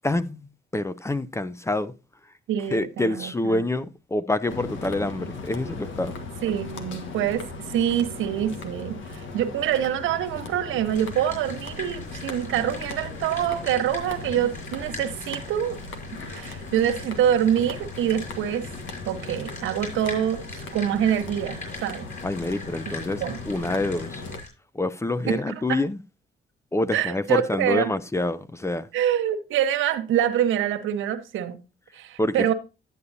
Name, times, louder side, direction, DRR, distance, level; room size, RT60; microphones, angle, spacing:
voice 1, 0.0-1.9 2.7-6.2 22.2-24.2 24.7-26.0 26.7-28.9 32.2-32.5, left 2 dB, 15° left, 0.5 m, -27 dB
voice 2, 2.5-3.7 6.4-15.8 16.3-18.7 19.1-22.1 23.2-23.4 25.3-25.8 26.9-27.9 28.9-31.6 31.9-32.5, right 10 dB, 85° right, 1.1 m, -25 dB
sound 1, 4.5-24.4, left 3 dB, 75° left, 1.6 m, -38 dB
sound 2, 10.9-24.5, left 2 dB, 40° left, 6.5 m, -42 dB
11.0 x 8.5 x 2.7 m
cardioid pair, 90°, 20 cm